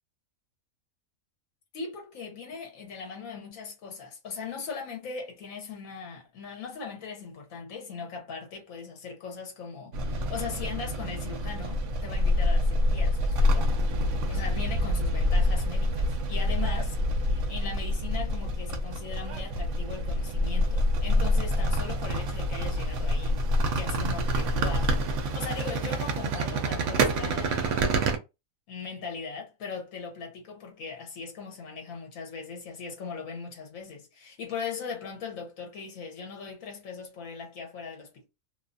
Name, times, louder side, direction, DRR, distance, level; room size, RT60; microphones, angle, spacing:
voice 1, 1.7-13.7 14.3-23.4 23.7-27.9 28.7-38.3, left 5 dB, 75° left, 1.2 m, -39 dB
sound 1, 9.9-28.2, equal, 70° right, 0.9 m, -27 dB
2.7 x 2.3 x 2.4 m
omnidirectional pair, 1.5 m